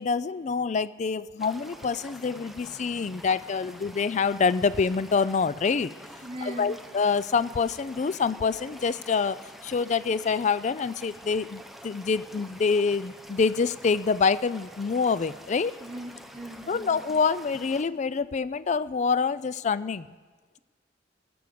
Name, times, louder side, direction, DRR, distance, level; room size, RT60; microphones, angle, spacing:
voice 1, 0.0-5.9 6.4-15.7 16.7-20.1, left 5 dB, 40° left, 16 dB, 0.4 m, -26 dB
sound 1, 1.4-17.8, equal, ahead, 0.8 m, -47 dB
voice 2, 6.2-6.8 15.8-17.0, right 1 dB, 35° right, 1 dB, 2.5 m, -39 dB
20.0 x 7.8 x 6.8 m, 1.4 s
head